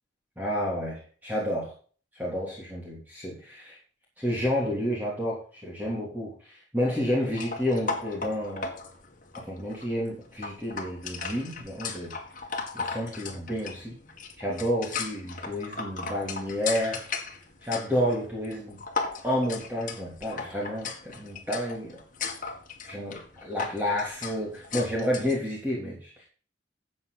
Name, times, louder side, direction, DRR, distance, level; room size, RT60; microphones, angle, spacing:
voice 1, 0.4-1.7 2.1-3.8 4.2-8.7 9.3-12.1 12.7-13.9 14.4-17.0 17.6-18.8 19.2-22.0 22.8-26.3, equal, 10° right, -4 dB, 3.2 m, -30 dB
sound 1, 7.3-25.4, left 4 dB, 45° left, 2.0 m, -37 dB
12.5 x 7.9 x 4.1 m, 0.41 s
head